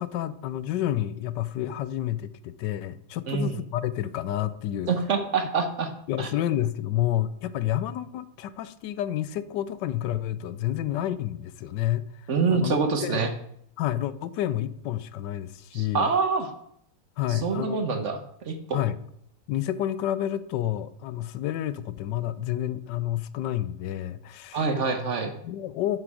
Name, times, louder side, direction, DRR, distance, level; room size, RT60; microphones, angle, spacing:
voice 1, 0.0-4.9 6.1-12.0 12.5-13.3 13.8-16.1 17.2-17.8 18.7-19.0 19.5-24.7 25.4-26.0, left 12 dB, 75° left, 15 dB, 1.2 m, -29 dB
voice 2, 3.3-3.6 4.9-5.9 6.2-6.3 12.3-13.3 15.7-16.5 17.3-18.2 18.4-18.8 24.5-25.4, right 4 dB, 45° right, 7 dB, 1.3 m, -26 dB
11.0 x 6.5 x 4.9 m, 0.71 s
omnidirectional pair, 2.0 m